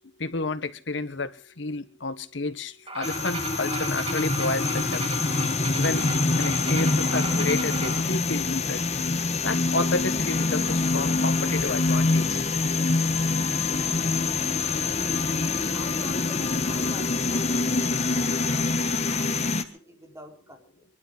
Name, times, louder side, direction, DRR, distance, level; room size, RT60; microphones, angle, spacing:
voice 1, 0.2-1.3 1.6-5.0 5.8-6.1 6.4-8.8 9.4-12.4, left 3 dB, 70° left, 11 dB, 1.4 m, -30 dB
sound 1, 2.9-8.0, right 3 dB, 30° right, 3.5 m, -35 dB
sound 2, 3.0-19.6, left 3 dB, 35° left, 1.5 m, -25 dB
voice 2, 15.7-20.9, equal, 15° right, 2 dB, 4.1 m, -47 dB
23.5 x 12.5 x 5.0 m, 0.42 s
head